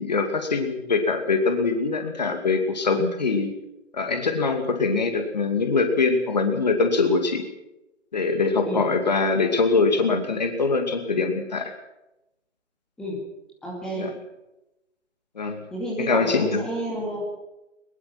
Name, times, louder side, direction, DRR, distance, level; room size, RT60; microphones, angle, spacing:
voice 1, 0.0-3.5 3.9-7.4 8.1-11.7 14.0-14.1 15.4-15.6 16.0-16.6, left 4 dB, 35° left, 6 dB, 2.5 m, -23 dB
voice 2, 13.6-14.1 15.7-17.2, right 1 dB, ahead, -4 dB, 2.4 m, -30 dB
22.0 x 21.0 x 5.9 m, 0.92 s
figure-of-eight pair, 155°, 38 cm